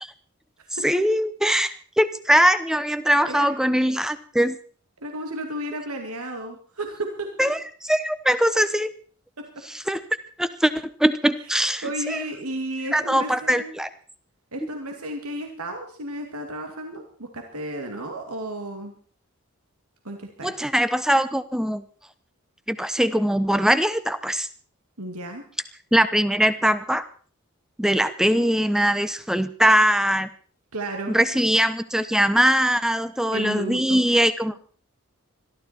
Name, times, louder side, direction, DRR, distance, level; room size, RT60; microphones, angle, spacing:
voice 1, 0.8-4.6 7.4-7.6 7.9-8.9 9.7-10.0 10.4-12.2 12.9-13.9 20.4-21.8 22.7-24.5 25.9-27.1 27.8-30.3 31.1-34.5, equal, 5° right, 13 dB, 0.8 m, -21 dB
voice 2, 5.0-7.5 9.4-9.5 11.8-13.7 14.5-18.9 20.0-20.5 25.0-25.4 30.7-31.1 33.3-34.0, right 1 dB, 90° right, 3 dB, 2.6 m, -33 dB
21.5 x 14.0 x 4.4 m, 0.43 s
head